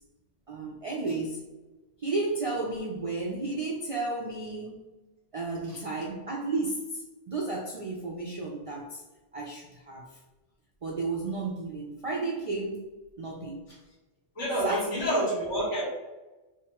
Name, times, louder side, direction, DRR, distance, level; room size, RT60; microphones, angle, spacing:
voice 1, 0.5-1.4 2.0-4.8 5.3-9.0 9.3-10.2 10.8-12.9 13.2-13.7 14.6-15.2, right 3 dB, 60° right, -2 dB, 0.3 m, -33 dB
voice 2, 14.4-15.8, right 1 dB, 85° left, -5 dB, 1.9 m, -28 dB
3.5 x 2.8 x 2.9 m, 1.1 s
omnidirectional pair, 1.2 m